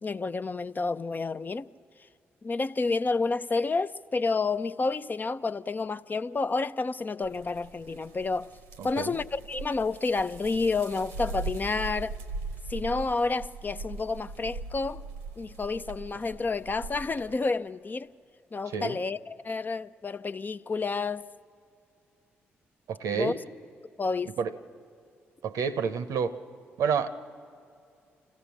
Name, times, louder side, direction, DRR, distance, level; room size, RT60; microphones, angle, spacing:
voice 1, 0.0-1.7 2.4-8.5 8.8-12.1 12.7-15.0 15.4-18.1 18.5-21.3 23.1-23.3 24.0-24.4, left 3 dB, 30° left, 0.5 m, -30 dB
sound 1, 7.2-17.3, right 3 dB, 90° right, 1.0 m, -40 dB
voice 2, 8.8-9.2 18.7-19.0 22.9-23.4 24.4-24.5 25.4-26.4 26.8-27.1, right 6 dB, 70° right, 0.8 m, -29 dB
25.5 x 16.0 x 7.2 m
hypercardioid pair, 40°, 6 cm